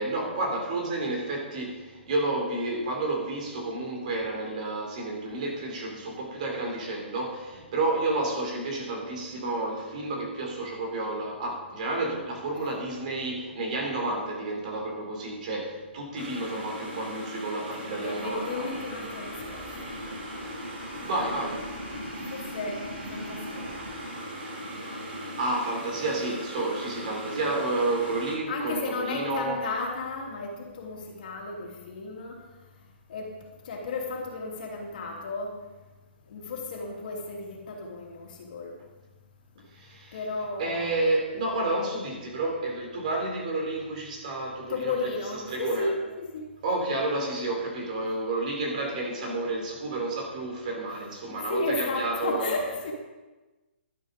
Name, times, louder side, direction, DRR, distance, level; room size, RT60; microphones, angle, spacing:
voice 1, 0.0-18.7 21.0-21.6 25.2-29.6 39.7-40.1 40.6-45.0 45.5-45.9 46.6-52.6, right 2 dB, 40° right, 1 dB, 3.5 m, -30 dB
sound 1, 16.2-28.4, equal, 55° right, 5.5 m, -38 dB
voice 2, 17.8-19.9 22.2-22.8 23.1-23.7 28.5-32.3 33.1-33.3 33.6-35.6 36.3-38.7 40.1-40.9 44.7-46.4 51.3-52.9, left 3 dB, 45° left, -1 dB, 3.1 m, -33 dB
sound 2, 18.2-24.0, left 4 dB, 30° left, 2.4 m, -52 dB
12.0 x 11.0 x 5.2 m, 1.2 s
hypercardioid pair, 170°, 6 cm